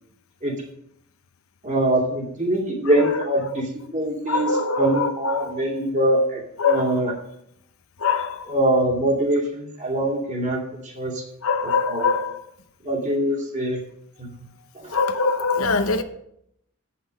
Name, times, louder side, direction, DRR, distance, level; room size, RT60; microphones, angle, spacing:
voice 1, 1.6-7.1 8.5-11.2 11.6-12.2 12.8-13.8 14.2-14.3 14.7-14.9, right 1 dB, 35° right, 2.5 m, -23 dB
voice 2, 4.3-5.5 6.6-6.9 8.0-8.5 11.4-12.4 14.9-16.0, left 4 dB, 85° left, 0.8 m, -23 dB
8.4 x 5.8 x 6.4 m
head